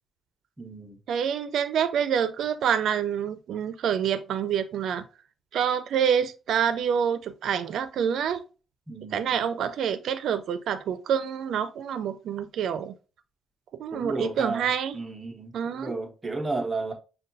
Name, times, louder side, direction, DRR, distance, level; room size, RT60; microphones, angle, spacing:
voice 1, 0.6-1.0 8.9-9.4 13.9-14.7 14.9-16.9, right 3 dB, 15° right, 0.7 m, -33 dB
voice 2, 1.1-5.0 5.5-8.4 9.1-12.9 13.7-15.0 15.5-15.9, right 8 dB, 70° right, 0.4 m, -27 dB
6.5 x 2.2 x 2.6 m
wide cardioid pair, 175°, 0 cm